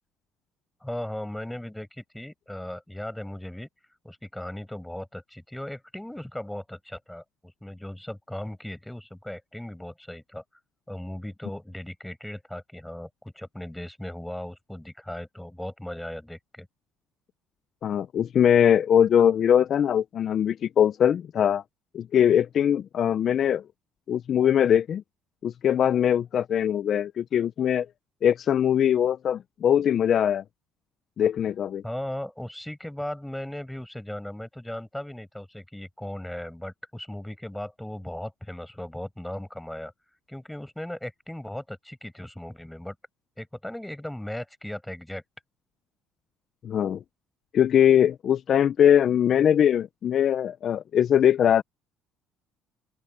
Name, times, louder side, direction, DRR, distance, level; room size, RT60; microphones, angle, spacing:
voice 1, 0.8-3.7 4.0-10.4 10.9-16.7 31.8-39.9 40.3-42.9 43.4-45.2, left 1 dB, 5° left, 6.7 m, -37 dB
voice 2, 17.8-21.6 21.9-23.6 24.1-25.0 25.4-27.9 28.2-30.4 31.2-31.8 46.6-47.0 47.5-51.6, left 9 dB, 50° left, 0.6 m, -21 dB
open air
cardioid pair, 95°, 0 cm